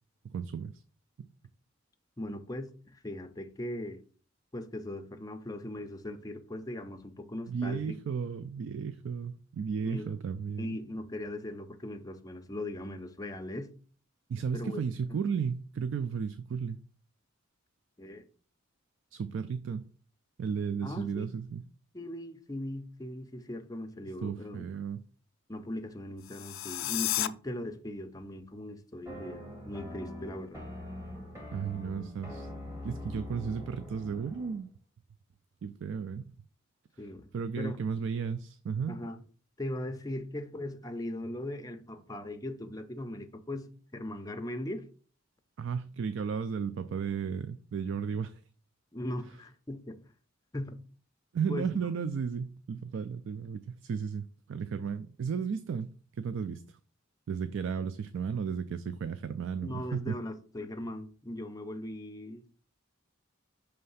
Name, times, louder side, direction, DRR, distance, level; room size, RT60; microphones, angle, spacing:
voice 1, 0.2-0.8 1.2-1.3 7.5-10.8 14.3-16.8 19.1-19.9 20.4-21.6 24.2-25.0 31.5-32.5 32.8-34.7 35.6-36.2 37.3-39.0 45.6-48.4 51.3-56.6 57.3-60.2, right 6 dB, 65° right, 0.3 m, -34 dB
voice 2, 2.2-4.0 4.5-7.9 9.8-10.1 10.6-13.7 14.5-14.8 18.0-18.2 20.8-21.3 21.9-24.6 25.5-30.6 37.0-37.2 37.6-37.8 38.9-39.2 39.6-44.9 48.9-50.1 50.5-50.8 51.5-51.7 59.6-62.5, left 1 dB, 15° left, 0.6 m, -39 dB
sound 1, 26.2-27.3, left 15 dB, 70° left, 0.4 m, -32 dB
sound 2, 29.1-34.6, left 1 dB, 15° right, 1.3 m, -43 dB
5.6 x 3.3 x 5.5 m
head